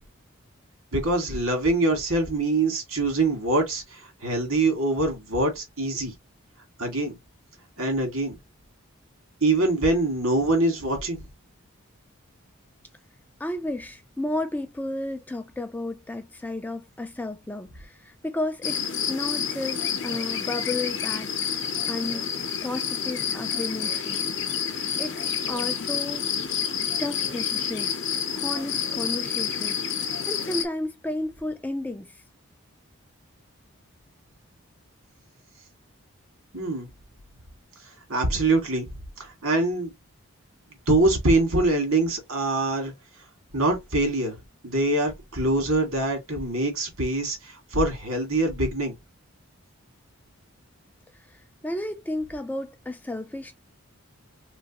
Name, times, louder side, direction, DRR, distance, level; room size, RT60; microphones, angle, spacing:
voice 1, 0.9-6.1 6.8-7.1 7.8-8.4 9.4-11.2 36.5-36.9 38.1-38.9 39.2-39.9 40.9-42.9 43.5-44.4 44.6-48.9, right 2 dB, 80° right, 1.7 m, -24 dB
voice 2, 13.4-18.8 19.1-21.5 21.9-22.3 22.6-26.3 27.0-28.0 28.3-32.2 51.1-53.5, left 1 dB, 10° left, 0.3 m, -33 dB
sound 1, 18.6-30.7, left 7 dB, 55° left, 0.7 m, -29 dB
3.2 x 3.1 x 2.9 m
head